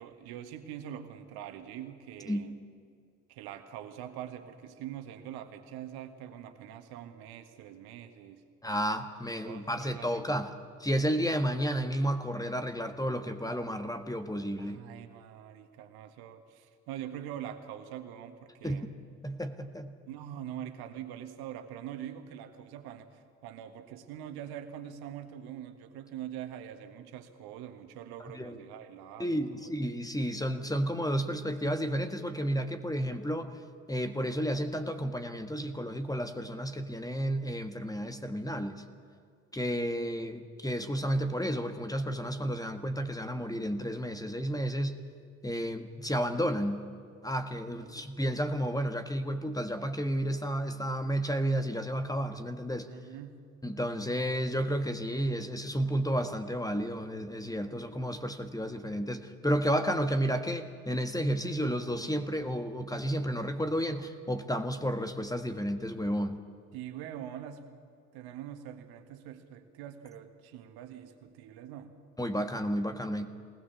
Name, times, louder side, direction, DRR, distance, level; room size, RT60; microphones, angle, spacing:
voice 1, 0.0-2.5 3.3-8.4 9.5-10.5 14.6-18.9 20.1-23.1 23.4-29.7 47.8-48.0 52.8-53.4 66.7-67.6 68.1-71.9, right 10 dB, 65° right, 8 dB, 1.8 m, -44 dB
voice 2, 8.6-10.5 10.8-14.8 18.6-18.8 19.2-19.9 28.3-28.6 29.2-33.5 33.9-38.8 39.5-45.0 45.4-46.8 47.2-52.9 53.6-66.4 72.2-73.3, equal, 10° left, 8 dB, 1.6 m, -32 dB
21.0 x 19.5 x 7.1 m, 2.2 s
hypercardioid pair, 55°, 40 cm